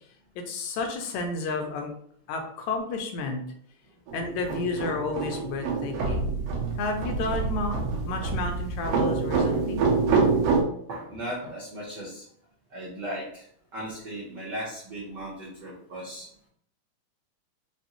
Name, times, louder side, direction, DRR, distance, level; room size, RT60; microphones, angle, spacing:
voice 1, 0.4-1.9 2.3-3.4 4.1-6.4 6.8-7.8 8.1-9.8, left 3 dB, 85° left, 3 dB, 2.0 m, -31 dB
sound 1, 4.1-10.6, right 4 dB, 70° right, 1.7 m, -26 dB
voice 2, 10.9-12.2 12.7-13.5 13.7-16.3, right 1 dB, 85° right, -6 dB, 0.9 m, -37 dB
5.2 x 2.6 x 2.9 m, 0.64 s
omnidirectional pair, 3.4 m